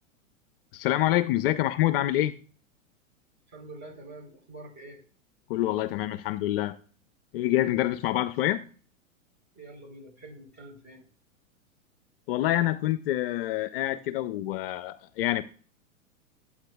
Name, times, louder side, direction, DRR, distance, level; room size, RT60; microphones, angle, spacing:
voice 1, 0.7-2.3 5.5-6.8 7.3-8.6 12.3-15.4, left 14 dB, 45° left, 0.5 m, -26 dB
voice 2, 3.5-5.0 9.5-11.0, right 2 dB, 25° right, 3.9 m, -46 dB
13.0 x 8.5 x 2.3 m
hypercardioid pair, 105°, 40 cm